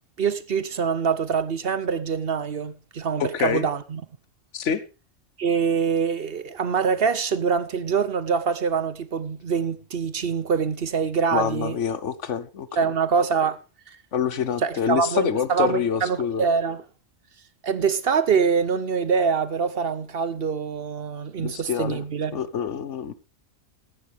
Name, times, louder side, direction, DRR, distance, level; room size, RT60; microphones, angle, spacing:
voice 1, 0.2-4.0 5.4-11.8 12.8-13.6 13.9-14.0 14.6-16.8 17.6-22.4, right 6 dB, 55° right, 0.9 m, -24 dB
voice 2, 3.2-3.7 4.5-4.8 11.3-12.7 14.1-16.5 21.4-22.0 22.3-23.1, left 7 dB, 70° left, 1.2 m, -26 dB
15.5 x 11.0 x 3.5 m
omnidirectional pair, 1.3 m